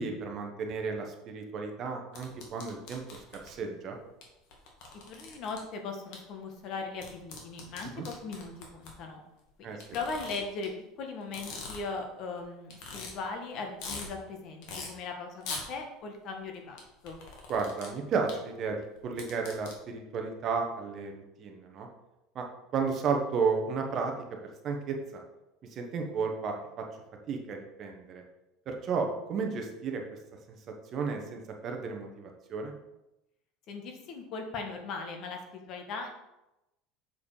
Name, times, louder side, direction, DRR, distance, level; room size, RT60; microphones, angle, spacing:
voice 1, 0.0-4.0 8.0-8.1 9.6-9.8 17.5-21.9 22.3-22.5 22.7-24.1 24.6-25.2 25.7-26.8 27.3-28.2 28.7-30.0 30.5-30.6 30.9-32.7, right 5 dB, 35° right, 3 dB, 1.0 m, -33 dB
sound 1, 2.1-3.5 4.2-4.3 4.5-5.6 6.1-6.2 7.0-8.9 9.8-10.6 11.2-12.0 12.4-12.5 12.7-13.1 13.5-14.1 14.6-14.9 15.4-15.6 16.8-17.9 18.3-18.4 19.0-19.7, left 4 dB, 60° left, 1.9 m, -41 dB
voice 2, 5.1-9.2 9.6-17.2 33.7-36.1, left 4 dB, 40° left, 4 dB, 1.3 m, -39 dB
7.1 x 4.9 x 4.8 m, 0.93 s
cardioid pair, 160°, 0 cm